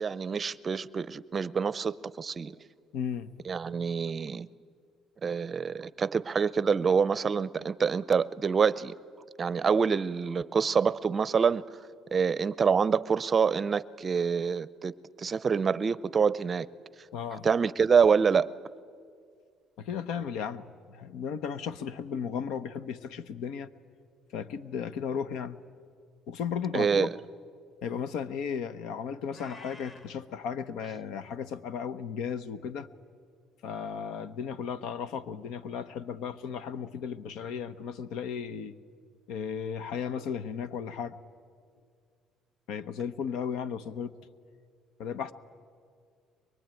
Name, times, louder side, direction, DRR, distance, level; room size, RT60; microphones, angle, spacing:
voice 1, 0.0-2.5 3.5-4.5 5.2-8.9 9.4-11.6 12.1-14.9 15.2-16.7 17.4-18.5 26.7-27.1, right 6 dB, 30° right, 0.6 m, -26 dB
voice 2, 2.9-3.3 17.1-17.5 19.8-23.7 24.3-25.6 26.3-27.1 27.8-32.9 33.6-38.7 39.3-41.2 42.7-44.1 45.0-45.3, left 7 dB, 80° left, 0.9 m, -35 dB
Meow, 29.3-30.1, left 1 dB, 25° left, 2.2 m, -50 dB
23.5 x 23.0 x 9.1 m
cardioid pair, 115°, 0 cm